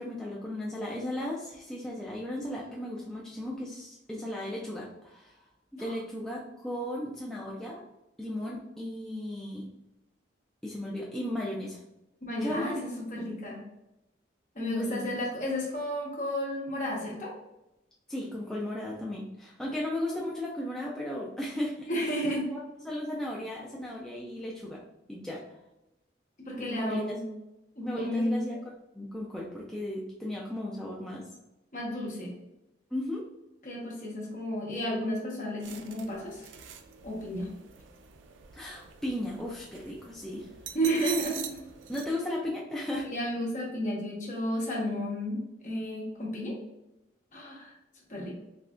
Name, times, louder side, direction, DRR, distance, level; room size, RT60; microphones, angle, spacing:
voice 1, 0.0-5.4 5.7-7.8 8.2-9.7 10.6-11.8 12.4-12.8 14.6-15.1 18.1-21.9 22.3-24.8 25.1-25.4 26.7-27.2 27.8-31.3 32.9-33.3 38.5-40.5 41.9-43.1, left 1 dB, 5° left, -5 dB, 0.3 m, -36 dB
voice 2, 12.3-13.6 14.5-17.3 21.9-22.5 26.4-27.2 27.8-28.4 31.7-32.3 33.6-36.5 37.0-37.5 40.7-41.6 43.1-46.5 47.3-47.7 48.1-48.4, equal, 40° left, -3 dB, 1.1 m, -32 dB
sound 1, 35.6-42.1, right 8 dB, 85° right, 0.4 m, -44 dB
3.6 x 3.2 x 2.4 m, 0.92 s
head